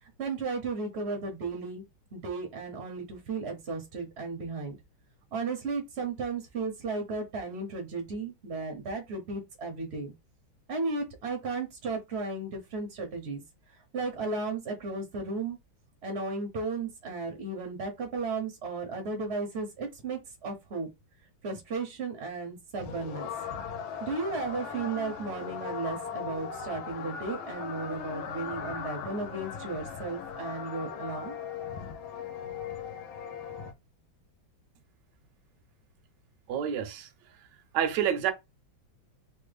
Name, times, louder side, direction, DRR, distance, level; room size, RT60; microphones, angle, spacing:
voice 1, 0.0-1.8 2.1-4.8 5.3-10.1 10.7-13.4 13.9-15.6 16.0-20.9 21.4-23.3 24.0-31.3, right 3 dB, 55° right, 0.7 m, -34 dB
sound 1, 22.8-33.7, left 7 dB, 85° left, 1.4 m, -38 dB
voice 2, 36.5-37.1 37.7-38.3, right 9 dB, 75° right, 1.1 m, -28 dB
3.3 x 2.2 x 3.2 m
omnidirectional pair, 2.2 m